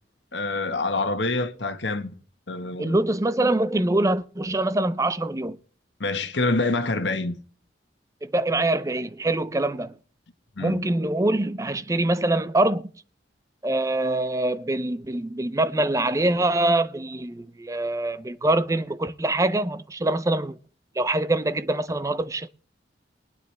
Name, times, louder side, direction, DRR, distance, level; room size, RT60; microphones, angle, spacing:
voice 1, 0.3-2.1 2.5-2.9 6.0-7.4 10.6-10.8, left 2 dB, 85° left, 1.3 m, -26 dB
voice 2, 2.8-5.6 8.2-9.9 10.6-12.9 13.6-20.6 21.0-22.5, right 2 dB, 20° right, 0.5 m, -24 dB
22.0 x 9.5 x 3.3 m
head